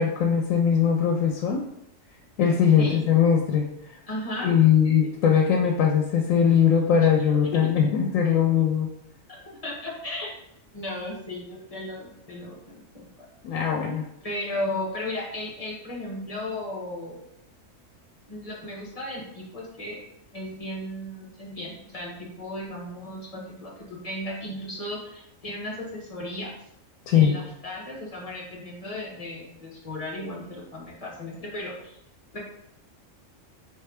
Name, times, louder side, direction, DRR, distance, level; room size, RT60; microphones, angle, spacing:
voice 1, 0.0-1.6 2.4-3.7 4.4-8.9 13.4-14.0 27.1-27.4, left 8 dB, 85° left, 1 dB, 1.0 m, -21 dB
voice 2, 2.8-3.1 4.1-4.6 7.5-7.7 9.3-10.3 10.7-13.2 14.2-17.2 18.3-20.0 20.3-26.5 27.1-32.0 32.3-32.4, left 1 dB, 30° left, -3 dB, 1.0 m, -35 dB
3.6 x 3.2 x 3.4 m, 0.79 s
omnidirectional pair, 1.3 m